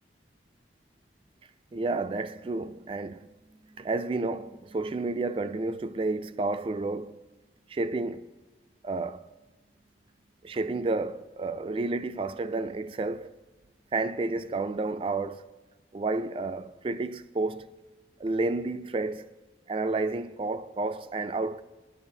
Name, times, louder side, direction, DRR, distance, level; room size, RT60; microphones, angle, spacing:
voice 1, 1.7-3.3 3.6-7.2 7.7-8.3 8.8-9.3 10.4-13.3 13.9-15.5 15.9-17.7 18.2-19.3 19.7-21.6, right 3 dB, 30° right, 0.3 m, -31 dB
19.5 x 10.5 x 2.7 m
head